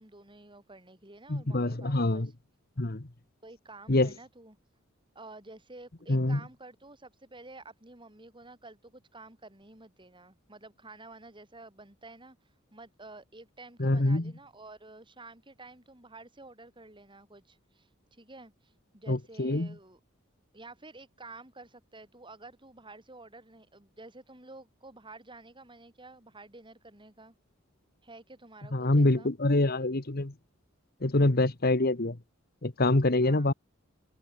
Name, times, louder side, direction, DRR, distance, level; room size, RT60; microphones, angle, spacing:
voice 1, 0.0-2.3 3.4-4.6 5.1-12.4 12.7-20.0 20.5-27.3 28.0-29.3 33.2-33.5, right 2 dB, 25° right, 7.6 m, -50 dB
voice 2, 1.3-2.3 2.8-3.0 3.9-4.1 6.1-6.4 13.8-14.3 19.1-19.7 28.7-30.3 31.0-32.2 32.6-33.5, left 2 dB, 50° left, 1.5 m, -25 dB
head